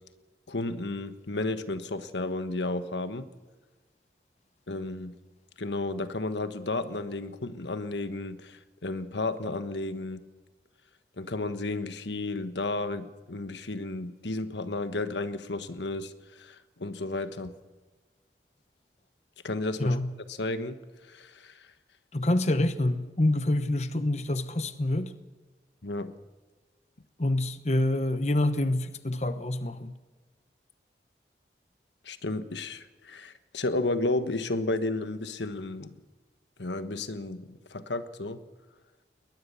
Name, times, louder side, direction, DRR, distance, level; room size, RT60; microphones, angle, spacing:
voice 1, 0.5-3.3 4.7-5.1 5.6-10.2 11.2-17.5 19.4-20.0 20.3-20.8 21.1-21.7 25.8-26.1 32.0-36.0 36.6-38.4, left 2 dB, 90° left, 1.4 m, -33 dB
voice 2, 19.8-20.1 22.1-25.1 27.2-30.0, left 1 dB, 40° left, 1.0 m, -27 dB
21.5 x 20.0 x 7.1 m
head